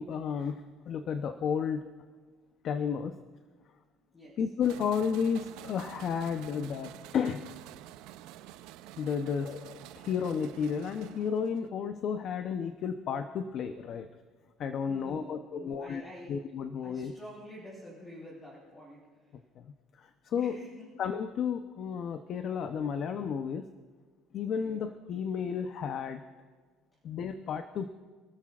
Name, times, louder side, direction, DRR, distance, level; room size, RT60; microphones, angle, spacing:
voice 1, 0.0-1.9 2.6-3.1 4.4-7.4 9.0-14.1 14.6-16.0 16.3-17.1 19.6-20.6 21.0-23.7 24.3-26.2 27.0-27.9, left 7 dB, 55° left, 7 dB, 0.8 m, -32 dB
sound 1, 4.6-11.7, right 13 dB, 85° right, 0.6 m, -48 dB
voice 2, 14.9-16.3 16.8-19.4 20.3-20.9 24.6-24.8, equal, 20° left, -6 dB, 4.8 m, -48 dB
28.0 x 13.5 x 2.5 m, 1.4 s
cardioid pair, 110°, 0 cm